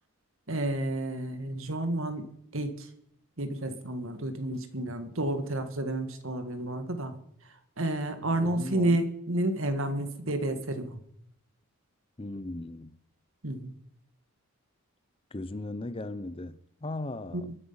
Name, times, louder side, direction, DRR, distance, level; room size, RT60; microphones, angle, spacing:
voice 1, 0.5-2.3 2.5-2.9 3.4-7.2 7.8-11.0 13.4-13.7 17.3-17.4, right 1 dB, 65° right, 1.8 m, -30 dB
voice 2, 8.3-9.0 12.2-13.0 15.3-17.6, left 2 dB, 25° left, 0.6 m, -38 dB
22.5 x 10.0 x 5.7 m
head